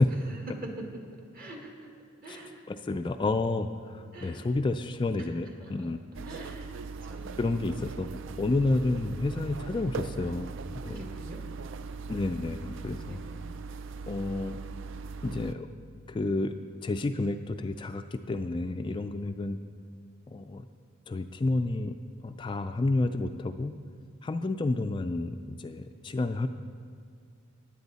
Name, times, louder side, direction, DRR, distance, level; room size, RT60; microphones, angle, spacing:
voice 1, 0.3-0.9 1.3-1.9 2.2-2.6 4.1-4.5 5.6-5.9 6.3-6.7 7.0-7.6 10.8-11.4 13.1-13.3, right 1 dB, 45° right, 0 dB, 2.0 m, -44 dB
voice 2, 2.7-6.0 7.4-8.1 8.4-11.0 12.1-13.2 14.1-14.6 15.2-15.7 16.1-19.6 20.3-20.7 21.1-22.0 22.2-23.7 24.2-26.5, left 2 dB, 25° left, 7 dB, 0.3 m, -30 dB
sound 1, 6.1-15.5, right 4 dB, 65° right, 0.4 m, -40 dB
16.0 x 9.8 x 4.1 m, 2.2 s
head